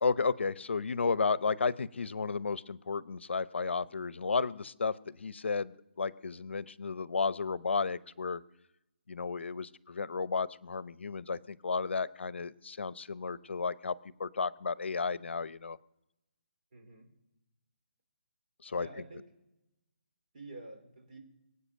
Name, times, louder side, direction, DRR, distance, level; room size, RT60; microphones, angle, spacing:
voice 1, 0.0-8.4 9.1-13.9 14.2-15.8 18.6-18.9, left 4 dB, 80° left, 18 dB, 0.7 m, -33 dB
voice 2, 16.7-17.1 18.7-19.3 20.3-21.2, right 2 dB, 40° right, 2 dB, 4.4 m, -48 dB
24.0 x 8.4 x 6.4 m, 0.96 s
hypercardioid pair, 170°, 6 cm